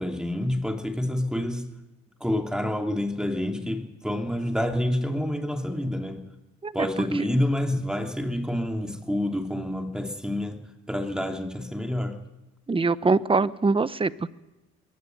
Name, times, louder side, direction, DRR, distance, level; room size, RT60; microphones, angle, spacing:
voice 1, 0.0-1.6 2.2-6.2 6.7-10.6 10.9-12.2, left 1 dB, ahead, 4 dB, 2.8 m, -28 dB
voice 2, 12.7-14.3, right 3 dB, 20° right, 15 dB, 0.9 m, -23 dB
21.5 x 16.0 x 9.4 m, 1.0 s
cardioid pair, 90°, 30 cm